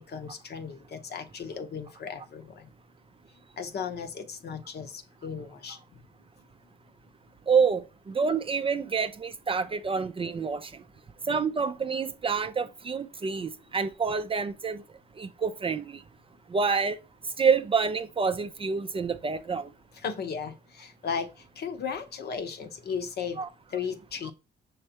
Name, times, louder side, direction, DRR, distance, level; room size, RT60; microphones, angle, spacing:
voice 1, 0.0-2.7 3.6-5.8 11.3-11.4 19.9-21.3 21.6-23.4 23.7-24.3, left 6 dB, 55° left, 0.8 m, -35 dB
voice 2, 7.5-10.7 11.3-14.8 15.2-16.0 16.5-17.0 17.4-19.7 23.4-23.5 24.3-24.4, right 5 dB, 30° right, 0.4 m, -27 dB
5.5 x 3.2 x 2.8 m
cardioid pair, 90°, 20 cm